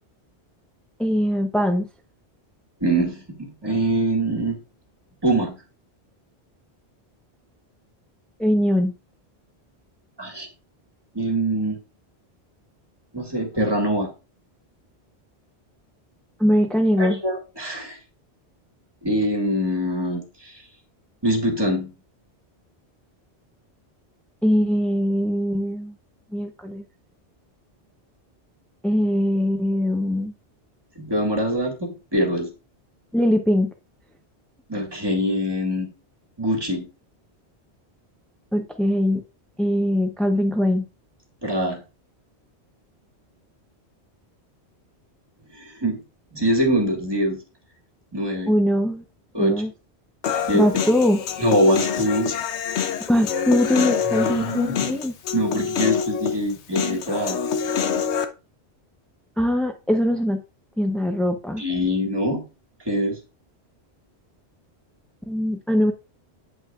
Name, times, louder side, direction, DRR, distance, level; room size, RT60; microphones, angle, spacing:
voice 1, 1.0-1.9 8.4-8.9 16.4-17.2 24.4-25.9 26.3-26.8 28.8-30.3 33.1-33.7 38.5-39.2 39.6-40.8 48.5-49.0 49.4-49.7 50.5-51.2 53.1-55.1 59.4-60.4 60.8-61.6 65.3-65.9, equal, ahead, 0.4 m, -21 dB
voice 2, 2.8-4.6 5.2-5.6 10.2-10.5 11.1-11.8 13.1-14.1 17.0-18.0 19.0-20.6 21.2-21.9 30.9-32.5 34.7-35.9 36.4-36.9 41.4-41.8 45.5-46.0 46.3-47.4 48.1-48.6 49.3-49.6 50.5-50.7 51.4-52.3 54.4-54.7 55.3-57.4 61.6-62.4 62.8-63.2, equal, 20° right, 1.7 m, -23 dB
Human voice, 50.2-58.3, left 7 dB, 85° left, 1.0 m, -26 dB
8.3 x 7.8 x 2.4 m
omnidirectional pair, 1.1 m